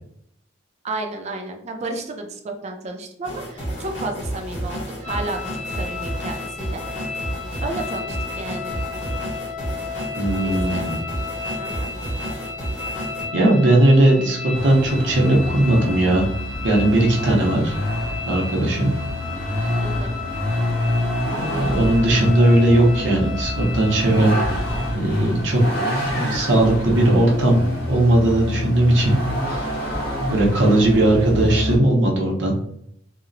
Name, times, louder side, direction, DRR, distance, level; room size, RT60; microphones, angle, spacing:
voice 1, 0.8-6.8 7.6-8.8 10.4-10.9 11.6-11.9 19.8-20.2, right 2 dB, 35° right, 4 dB, 0.4 m, -32 dB
sound 1, 3.2-13.3, right 1 dB, 80° left, 1.3 m, -31 dB
sound 2, 5.0-24.9, left 5 dB, 5° left, 0.7 m, -33 dB
voice 2, 10.1-11.0 13.3-14.4 14.6-16.3 16.6-17.7 18.3-18.9 21.3-24.3 24.9-25.6 26.0-29.1 29.5-30.0 30.3-32.5, right 1 dB, 70° right, -1 dB, 0.7 m, -18 dB
Vehicle, 14.5-31.8, left 1 dB, 55° left, 0.8 m, -26 dB
2.8 x 2.0 x 2.5 m, 0.72 s
head